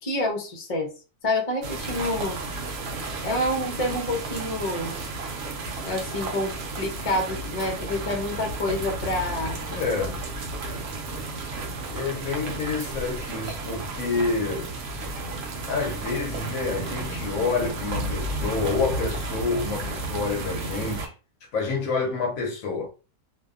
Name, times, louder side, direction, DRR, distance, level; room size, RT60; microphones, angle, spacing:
voice 1, 0.0-0.9 1.2-2.4 3.2-4.9 5.8-9.6, left 1 dB, 45° left, 0.4 m, -28 dB
sound 1, 1.6-21.1, right 2 dB, 65° right, 0.8 m, -33 dB
voice 2, 9.7-10.3 11.9-14.8 15.7-21.1 21.5-22.9, left 4 dB, 70° left, 0.9 m, -28 dB
2.6 x 2.3 x 2.3 m
omnidirectional pair, 1.7 m